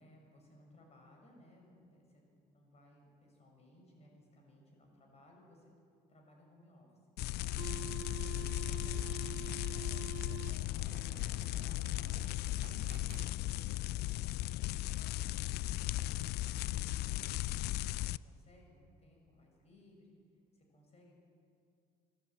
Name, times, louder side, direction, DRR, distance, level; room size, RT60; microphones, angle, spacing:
voice 1, 0.0-5.7 6.1-6.9 8.4-13.8 14.4-17.7 18.1-20.2 20.5-21.1, left 1 dB, 40° left, 1 dB, 6.7 m, -62 dB
sound 1, 7.2-18.2, left 16 dB, 70° left, 0.4 m, -37 dB
sound 2, 7.3-13.8, right 14 dB, 90° right, 0.5 m, -49 dB
24.5 x 13.5 x 8.8 m, 2.4 s
cardioid pair, 110°, 17 cm